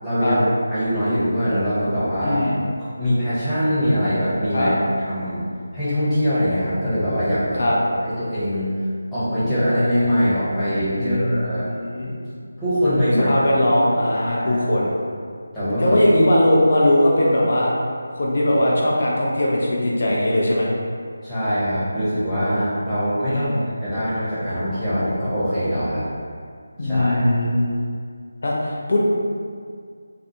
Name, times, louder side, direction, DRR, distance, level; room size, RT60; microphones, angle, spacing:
voice 1, 0.0-2.4 3.0-4.8 5.1-5.4 5.7-7.7 8.0-8.7 9.1-11.7 12.6-13.3 14.3-14.6 15.5-16.0 21.2-26.0 26.8-27.3, equal, 5° left, -17 dB, 0.8 m, -22 dB
voice 2, 2.2-2.6 4.5-4.7 7.5-7.8 11.0-12.1 13.3-15.0 15.8-17.7 18.1-20.7 23.2-23.6 26.8-27.7 28.4-29.0, left 1 dB, 55° left, -4 dB, 0.6 m, -20 dB
2.4 x 2.3 x 2.7 m, 2.1 s
figure-of-eight pair, 165°, 0 cm